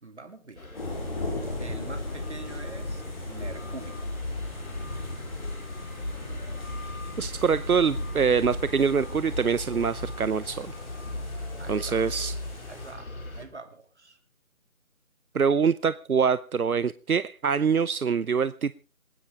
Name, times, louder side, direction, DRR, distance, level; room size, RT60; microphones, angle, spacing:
voice 1, 0.0-0.7 1.0-4.1 11.6-12.3 12.7-14.2, right 3 dB, 50° right, 8 dB, 3.1 m, -45 dB
sound 1, 0.6-13.5, left 2 dB, 75° left, 4.5 m, -38 dB
sound 2, 0.7-12.9, left 2 dB, 30° left, 5.8 m, -38 dB
voice 2, 7.2-10.7 11.7-12.3 15.3-18.7, right 6 dB, 85° right, 16 dB, 0.9 m, -24 dB
27.0 x 10.0 x 3.7 m, 0.35 s
figure-of-eight pair, 175°, 43 cm